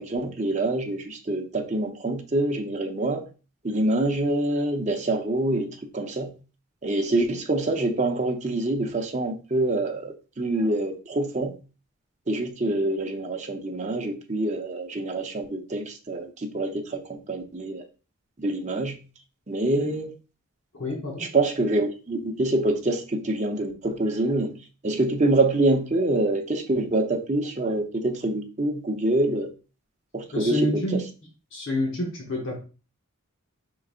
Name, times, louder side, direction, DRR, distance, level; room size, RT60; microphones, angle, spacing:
voice 1, 0.0-3.3 3.6-6.3 6.8-11.6 12.3-17.9 18.4-19.0 19.5-20.1 21.2-24.5 24.8-29.5 30.1-31.0, right 2 dB, 30° right, 0.6 m, -26 dB
voice 2, 20.7-21.3 30.3-31.0 31.5-32.6, left 1 dB, 60° left, 1.0 m, -28 dB
4.8 x 3.9 x 2.4 m
head